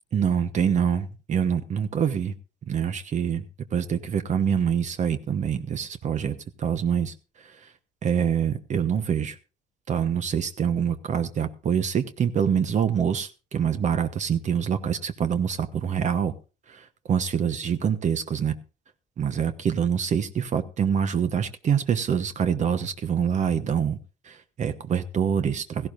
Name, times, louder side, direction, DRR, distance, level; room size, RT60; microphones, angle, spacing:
voice 1, 0.1-2.3 2.7-3.4 3.7-7.1 7.4-7.6 8.0-9.4 9.9-16.3 16.7-18.5 19.2-24.0 24.2-25.9, right 7 dB, 45° right, 10 dB, 1.1 m, -25 dB
16.5 x 16.0 x 2.5 m, 0.32 s
cardioid pair, 110°, 17 cm